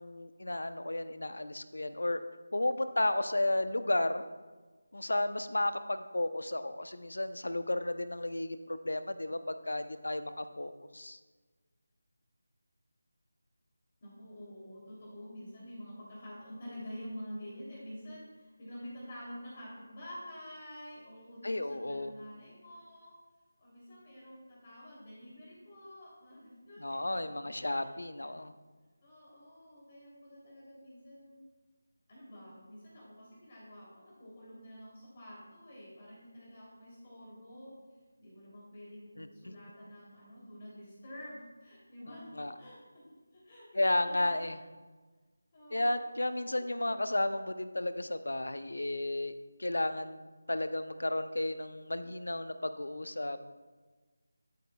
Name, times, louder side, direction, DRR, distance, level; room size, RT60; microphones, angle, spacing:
voice 1, 0.0-2.2 2.5-4.2 4.9-11.2 21.4-22.1 26.8-28.5 39.2-39.5 42.3-42.5 43.8-44.6 45.7-49.3 49.6-53.4, left 1 dB, 70° left, 11 dB, 0.7 m, -33 dB
voice 2, 14.0-23.1 23.6-27.4 27.7-27.9 28.2-28.3 29.0-31.4 32.1-37.7 38.2-42.3 42.6-42.8 43.3-44.5 45.5-46.3 46.5-46.6, equal, 35° left, -6 dB, 3.0 m, -48 dB
13.0 x 8.6 x 2.3 m, 1.3 s
figure-of-eight pair, 160°, 0 cm